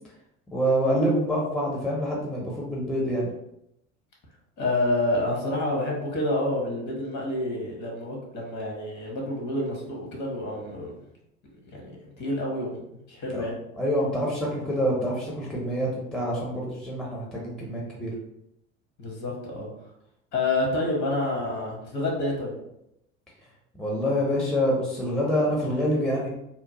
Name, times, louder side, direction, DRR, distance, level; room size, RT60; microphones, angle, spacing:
voice 1, 0.5-3.3 13.3-13.4 13.8-18.1 23.7-26.3, equal, ahead, -4 dB, 0.7 m, -26 dB
voice 2, 4.6-10.9 11.6-13.5 19.0-19.7 20.3-22.5, left 1 dB, 45° left, -1 dB, 1.3 m, -28 dB
2.9 x 2.1 x 2.8 m, 0.81 s
hypercardioid pair, 70°, 39 cm